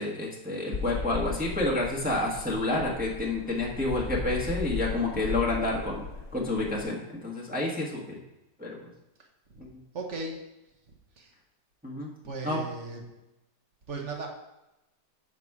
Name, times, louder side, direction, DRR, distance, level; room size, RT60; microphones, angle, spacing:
voice 1, 0.0-6.0 6.3-8.2 8.6-8.9 9.6-9.8 11.8-12.1 12.4-12.6, left 2 dB, 5° right, -4 dB, 1.0 m, -29 dB
sound 1, 0.7-6.8, left 4 dB, 45° left, 1.5 m, -37 dB
voice 2, 9.9-10.5 11.2-11.3 12.2-13.0 13.9-14.3, right 3 dB, 50° right, 2 dB, 1.2 m, -36 dB
6.8 x 5.0 x 4.7 m, 0.95 s
omnidirectional pair, 1.9 m